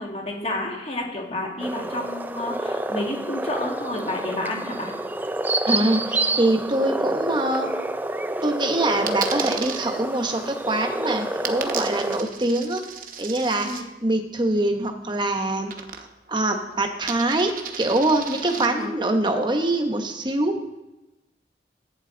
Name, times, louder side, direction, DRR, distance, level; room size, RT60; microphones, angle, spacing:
voice 1, 0.0-4.9 13.6-13.8 18.4-18.9, left 1 dB, 35° left, 0 dB, 1.8 m, -30 dB
sound 1, 1.6-12.2, right 2 dB, 10° right, 0.4 m, -28 dB
voice 2, 5.6-7.7 8.4-12.8 13.2-13.7 14.0-15.7 16.3-20.6, right 2 dB, 25° right, 4 dB, 1.1 m, -24 dB
Coin (dropping), 9.1-9.8 11.5-13.8 15.7-16.3 16.6-18.7, right 7 dB, 50° right, 0.9 m, -34 dB
14.5 x 8.9 x 3.9 m, 1.0 s
head